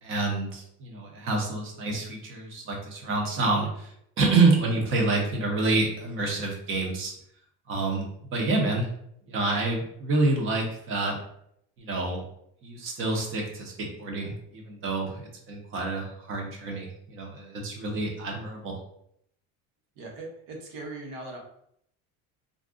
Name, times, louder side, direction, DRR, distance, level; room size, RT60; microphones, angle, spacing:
voice 1, 0.0-3.9 4.2-7.1 7.7-8.9 9.3-11.2 11.8-12.2 12.6-15.2 15.5-18.8, right 3 dB, 40° right, 0 dB, 0.8 m, -27 dB
voice 2, 19.9-21.4, right 2 dB, 70° right, 0 dB, 1.0 m, -39 dB
2.5 x 2.3 x 3.6 m, 0.71 s
cardioid pair, 155°, 33 cm